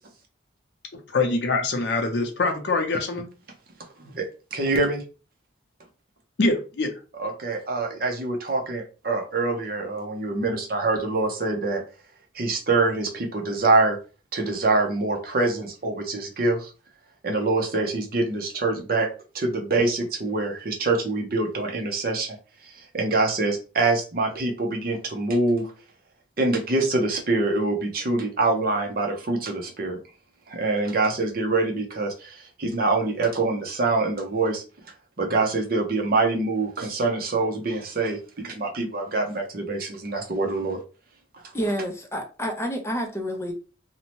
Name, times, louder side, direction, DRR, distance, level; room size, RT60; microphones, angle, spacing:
voice 1, 1.1-3.3 6.4-6.9, left 3 dB, 65° left, 0.5 m, -24 dB
voice 2, 4.0-5.0 7.1-11.8 12.3-14.0 14.3-16.7 17.2-19.1 19.3-22.4 22.6-25.7 26.4-30.0 30.5-34.6 35.2-40.8 41.3-41.4, right 3 dB, 50° right, 0.6 m, -25 dB
voice 3, 41.5-43.5, equal, 15° left, 0.4 m, -29 dB
2.7 x 2.1 x 2.9 m
head